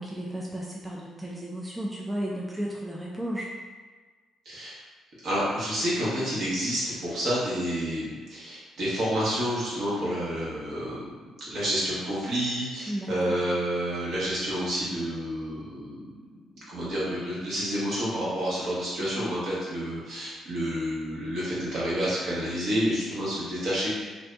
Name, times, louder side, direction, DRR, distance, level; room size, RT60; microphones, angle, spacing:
voice 1, 0.0-3.5 12.9-13.4 19.0-19.3, right 1 dB, 10° right, -3 dB, 0.4 m, -34 dB
voice 2, 4.4-4.8 5.2-11.2 11.5-16.2 16.5-23.9, equal, 60° right, -8 dB, 1.4 m, -29 dB
2.6 x 2.6 x 3.3 m, 1.4 s
cardioid pair, 115°, 0 cm